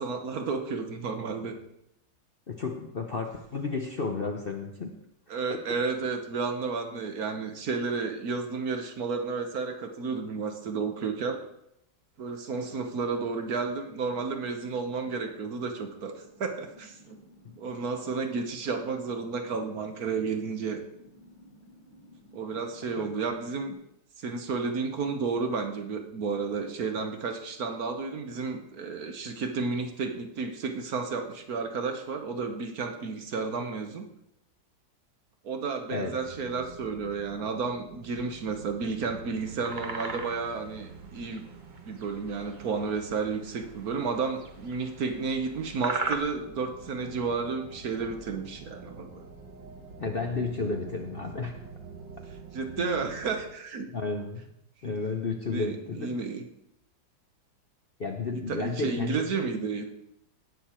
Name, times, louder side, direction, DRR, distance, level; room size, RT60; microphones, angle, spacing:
voice 1, 0.0-1.5 5.3-11.4 12.2-17.2 17.6-20.8 22.3-23.8 24.2-34.1 35.4-41.5 41.8-49.2 52.5-53.9 54.8-54.9 55.5-56.5 58.5-59.9, right 4 dB, 60° right, 6 dB, 1.4 m, -32 dB
voice 2, 2.5-5.0 5.3-5.6 17.4-17.5 23.0-23.1 35.9-36.1 50.0-51.6 52.8-52.9 53.9-54.4 54.8-56.1 58.0-59.3, left 4 dB, 45° left, 3 dB, 0.7 m, -32 dB
sound 1, 12.5-23.7, equal, 65° left, 4.2 m, -56 dB
sound 2, 36.2-53.4, right 4 dB, 80° right, 2.1 m, -47 dB
sound 3, 39.4-40.6 41.1-41.4 41.7-42.6 43.4-43.5 44.1-45.2 45.8-46.2, right 3 dB, 35° right, 0.8 m, -34 dB
17.5 x 6.6 x 4.4 m, 0.79 s
omnidirectional pair, 1.9 m